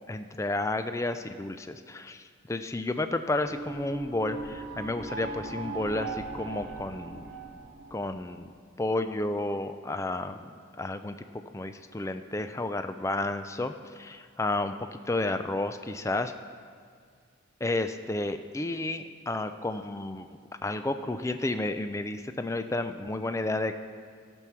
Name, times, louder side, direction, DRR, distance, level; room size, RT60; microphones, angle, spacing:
voice 1, 0.1-7.3 7.9-8.5 8.8-10.4 10.7-11.2 11.5-16.3 17.6-20.3 20.6-23.8, left 2 dB, 15° left, 9 dB, 0.3 m, -31 dB
sound 1, 3.4-8.5, right 3 dB, 55° right, 1.4 m, -39 dB
14.0 x 6.2 x 5.8 m, 2.1 s
head